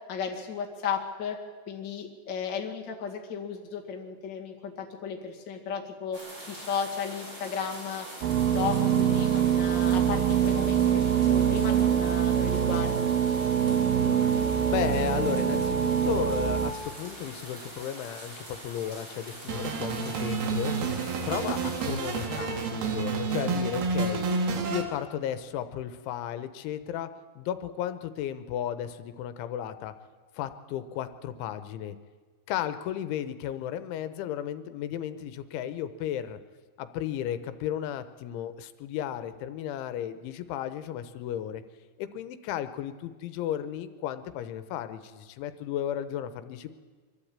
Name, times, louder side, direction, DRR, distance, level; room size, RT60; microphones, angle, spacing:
voice 1, 0.1-1.4 1.7-6.2 6.5-8.1 8.5-13.2, left 6 dB, 40° left, 0 dB, 1.7 m, -34 dB
sound 1, 6.1-22.3, right 1 dB, 25° right, 5.0 m, -43 dB
sound 2, 8.2-16.7, right 9 dB, 80° right, 2.0 m, -24 dB
voice 2, 14.0-20.7 21.2-24.3 24.7-27.1 27.4-29.9 30.3-32.0 32.5-36.4 36.8-41.6 42.0-46.8, left 10 dB, 90° left, 12 dB, 3.3 m, -34 dB
sound 3, 19.5-24.8, right 4 dB, 60° right, 3.6 m, -29 dB
24.0 x 13.5 x 8.8 m, 1.5 s
omnidirectional pair, 5.4 m